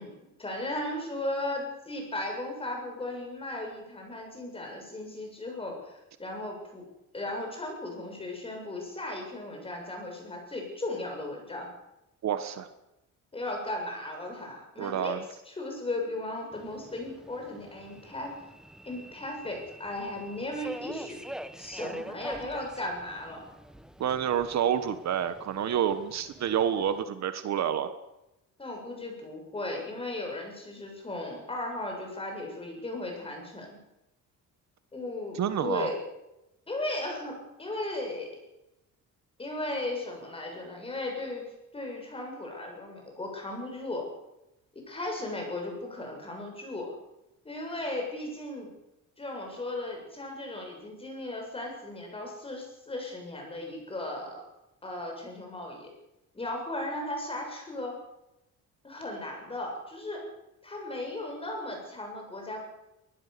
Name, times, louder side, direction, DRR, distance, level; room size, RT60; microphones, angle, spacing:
voice 1, 0.0-6.8 7.1-11.7 13.3-15.1 15.5-18.3 18.8-21.2 21.6-23.5 28.6-33.8 34.9-36.0 36.7-38.3 39.4-41.4 41.7-44.0 44.7-46.9 47.4-48.7 49.2-54.4 54.8-55.9 56.3-58.0 58.8-60.2 60.6-62.6, left 2 dB, 15° left, 1 dB, 7.4 m, -36 dB
voice 2, 12.2-12.7 14.8-15.2 24.0-27.9 35.3-35.9, right 9 dB, 55° right, 10 dB, 1.5 m, -28 dB
Subway metro underground, 16.5-27.0, equal, ahead, 1.1 m, -45 dB
23.0 x 19.5 x 7.0 m, 0.92 s
cardioid pair, 150°, 32 cm